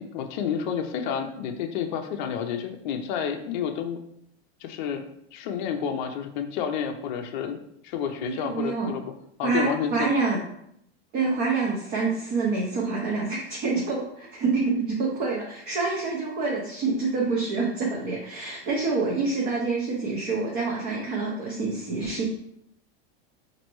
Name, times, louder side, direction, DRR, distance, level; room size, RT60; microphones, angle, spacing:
voice 1, 0.0-4.0 4.6-5.0 5.3-7.6 7.8-9.1 9.4-10.1, left 7 dB, 50° left, 5 dB, 0.5 m, -30 dB
voice 2, 8.2-8.9 9.4-10.4 11.1-22.2, right 4 dB, 30° right, -2 dB, 0.6 m, -27 dB
4.2 x 2.6 x 3.0 m, 0.73 s
supercardioid pair, 160°, 31 cm